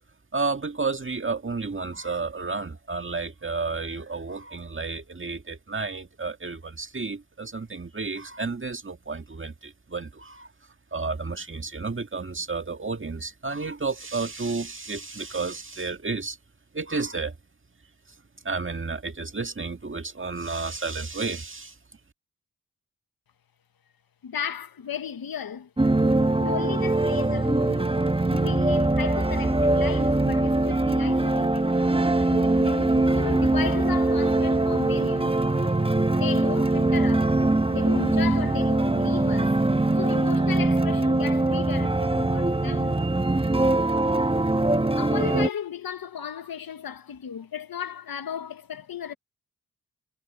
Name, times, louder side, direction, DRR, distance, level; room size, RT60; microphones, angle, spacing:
voice 1, 0.3-10.5 10.9-16.4 16.7-17.3 18.4-21.8, right 4 dB, 35° right, 1.9 m, -31 dB
voice 2, 24.2-25.7 26.4-28.0 28.3-31.7 32.2-35.3 36.1-37.3 37.7-39.6 39.9-42.9 45.0-49.1, left 8 dB, 75° left, 1.6 m, -35 dB
sound 1, 25.8-45.5, right 2 dB, 15° right, 1.4 m, -22 dB
cardioid pair, 45°, 36 cm